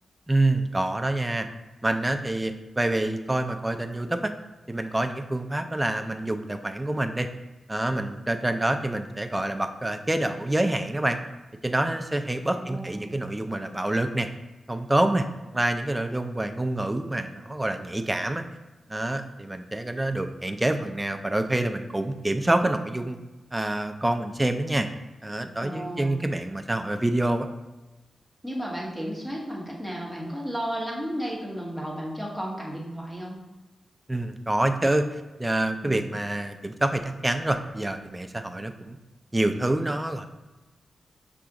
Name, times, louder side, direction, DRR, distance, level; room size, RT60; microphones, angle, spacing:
voice 1, 0.3-1.5 1.8-4.3 4.7-7.3 7.7-11.2 11.6-14.3 14.7-15.3 15.5-18.4 18.9-23.2 23.5-24.9 25.2-27.5 34.1-35.1 35.4-39.0 39.3-40.3, right 1 dB, 15° right, 7 dB, 0.4 m, -27 dB
voice 2, 12.6-13.2 25.6-26.1 28.4-33.4 35.8-36.0, equal, 5° left, -4 dB, 1.2 m, -33 dB
5.8 x 2.4 x 3.7 m, 1.1 s
cardioid pair, 85°, 0 cm